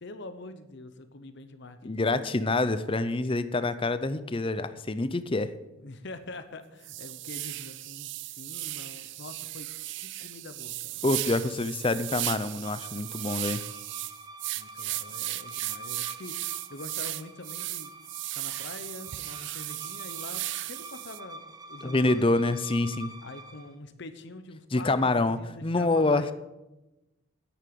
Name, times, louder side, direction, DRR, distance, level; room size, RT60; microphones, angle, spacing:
voice 1, 0.0-2.2 5.4-9.7 10.0-11.0 14.4-17.9 18.3-22.6 23.2-26.3, left 2 dB, 55° left, 10 dB, 0.9 m, -45 dB
voice 2, 1.8-5.5 11.0-13.6 21.8-23.1 24.7-26.3, left 2 dB, 25° left, 13 dB, 0.5 m, -26 dB
sound 1, 6.2-6.4 6.8-21.2, right 17 dB, 55° right, 0.4 m, -36 dB
sound 2, 11.2-23.7, right 2 dB, 20° right, 0.7 m, -47 dB
10.0 x 8.8 x 7.7 m, 1.0 s
head